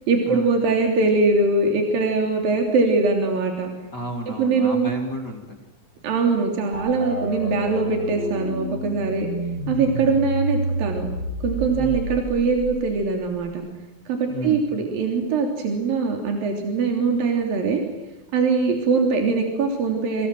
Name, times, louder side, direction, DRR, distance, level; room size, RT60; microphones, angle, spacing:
voice 1, 0.1-3.7 4.4-4.9 6.0-9.3 9.7-11.1 11.4-13.6 14.1-17.8 18.3-20.3, right 4 dB, 75° right, 2 dB, 5.0 m, -22 dB
voice 2, 3.9-5.6 7.4-7.6 11.7-12.1 14.3-14.8, left 1 dB, 30° left, 2 dB, 3.0 m, -32 dB
sound 1, 6.7-13.4, right 1 dB, 35° right, 7.7 m, -29 dB
29.0 x 26.5 x 7.8 m, 0.96 s
omnidirectional pair, 4.1 m